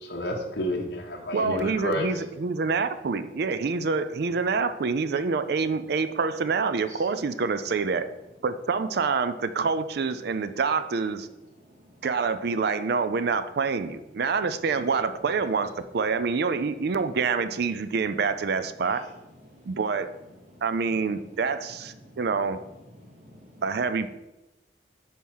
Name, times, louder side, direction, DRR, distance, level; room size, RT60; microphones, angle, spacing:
voice 1, 0.0-2.1, left 1 dB, 65° left, -1 dB, 1.0 m, -30 dB
voice 2, 1.3-8.1 8.4-11.3 12.0-19.0 19.6-20.1 20.6-22.6 23.6-24.1, right 5 dB, 60° right, 12 dB, 0.4 m, -26 dB
voice 3, 11.6-12.0 14.7-14.8 18.8-19.0 19.4-19.8 20.5-20.6 21.9-22.4 22.9-23.6, equal, 45° right, -4 dB, 2.5 m, -51 dB
5.4 x 4.4 x 6.3 m, 1.0 s
head